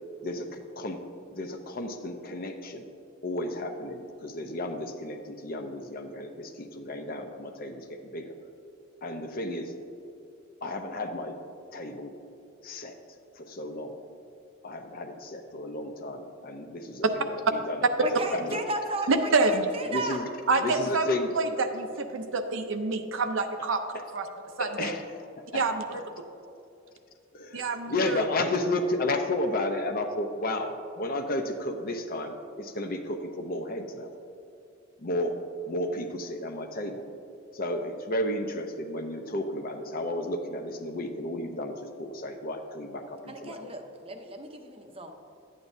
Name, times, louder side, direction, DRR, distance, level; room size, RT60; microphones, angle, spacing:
voice 1, 0.2-1.0 1.3-2.9 3.2-8.3 9.0-9.7 10.6-11.4 11.7-12.1 12.6-13.0 13.3-14.0 14.6-18.6 19.9-20.3 20.6-21.3 24.6-25.3 25.5-25.6 25.9-26.0 27.3-34.1 35.0-35.4 35.7-37.0 37.5-43.7, left 1 dB, 45° left, 5 dB, 0.7 m, -33 dB
voice 2, 18.0-20.2 43.3-45.1, right 2 dB, 30° right, 5 dB, 0.7 m, -34 dB
voice 3, 19.1-19.7 20.5-21.1 21.4-23.8 24.1-24.2 24.6-24.9 25.5-26.0 27.5-28.2, right 3 dB, 65° right, 7 dB, 0.6 m, -27 dB
11.0 x 8.7 x 2.7 m, 2.7 s
head